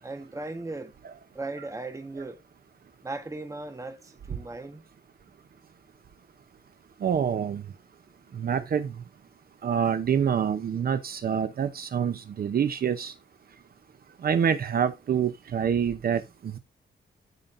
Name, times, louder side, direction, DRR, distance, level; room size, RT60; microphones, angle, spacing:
voice 1, 0.0-0.9 1.3-2.4 3.0-4.8, right 2 dB, 15° right, 1.3 m, -37 dB
voice 2, 7.0-7.6 8.3-8.9 9.6-13.1 14.2-16.6, right 7 dB, 55° right, 0.8 m, -26 dB
13.0 x 5.2 x 2.6 m
wide cardioid pair, 125°, 19 cm